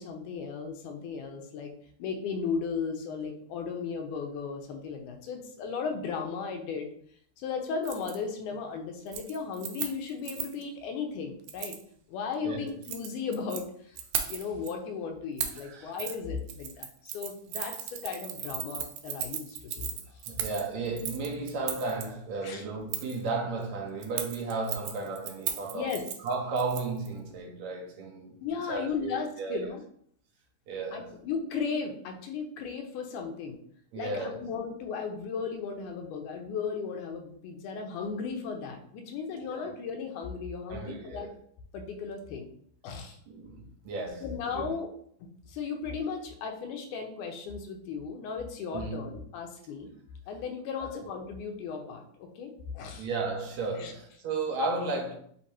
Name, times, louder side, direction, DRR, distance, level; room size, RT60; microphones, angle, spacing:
voice 1, 0.0-1.7 2.0-6.9 7.4-11.8 12.1-14.0 14.3-19.9 22.4-22.6 25.7-26.0 28.4-29.8 30.9-33.6 33.9-41.3 41.7-42.5 42.8-43.2 44.2-44.9 45.5-49.9 50.3-53.1 53.8-53.9, left 5 dB, 80° left, 2.1 m, -36 dB
Keys jangling, 7.8-8.2 8.5-8.8 9.1-10.6 11.5-11.8 12.7-13.6 14.0-14.7 15.4-15.6 16.0-16.2 16.5-22.0 22.9-23.2 24.0-27.1 27.4-27.5, right 10 dB, 90° right, 2.2 m, -36 dB
voice 2, 20.3-25.9 26.2-29.7 30.7-31.2 33.9-34.4 39.5-39.7 40.7-41.3 43.3-44.7 48.7-49.1 50.8-51.1 52.9-55.1, right 3 dB, 70° right, 1.9 m, -34 dB
6.4 x 2.9 x 2.8 m
omnidirectional pair, 3.8 m